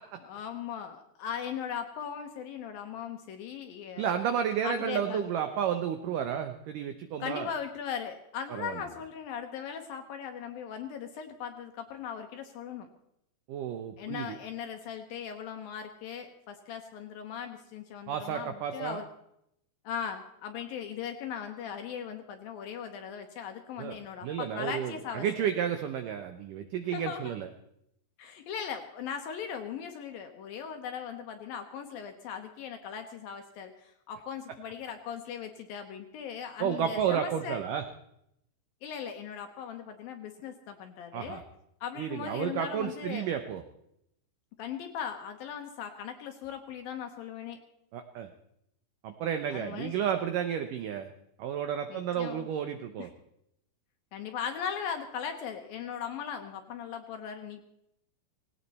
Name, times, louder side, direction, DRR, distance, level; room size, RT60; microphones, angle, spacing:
voice 1, 0.2-4.0 4.6-5.2 7.2-12.9 14.0-19.1 19.8-25.5 26.9-27.3 28.2-37.6 38.8-41.4 41.8-43.3 44.6-47.6 49.5-50.0 51.9-52.5 53.0-53.1 54.1-57.6, left 8 dB, 70° left, 6 dB, 2.3 m, -39 dB
voice 2, 4.0-7.5 8.5-8.8 13.5-14.4 18.1-19.0 23.8-27.5 36.6-37.8 41.1-41.4 42.0-43.6 47.9-48.3 49.0-51.1 51.4-53.1, right 8 dB, 90° right, 8 dB, 1.8 m, -32 dB
18.0 x 17.5 x 4.2 m, 0.77 s
omnidirectional pair, 5.0 m